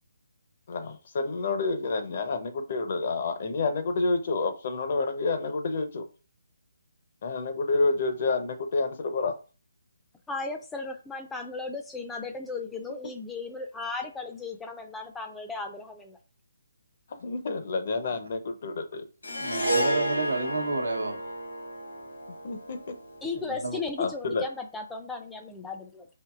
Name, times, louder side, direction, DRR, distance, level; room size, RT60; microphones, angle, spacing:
voice 1, 0.7-6.1 7.2-9.4 17.1-19.0 22.4-23.0 24.0-24.4, left 3 dB, 45° left, 0.6 m, -29 dB
voice 2, 10.3-16.2 23.2-26.1, left 3 dB, 5° left, 0.4 m, -36 dB
Harp, 19.2-23.7, right 1 dB, 80° left, 1.6 m, -31 dB
voice 3, 19.4-21.2 23.4-23.8, right 2 dB, 85° right, 0.9 m, -30 dB
4.5 x 2.7 x 2.4 m
figure-of-eight pair, 150°, 0 cm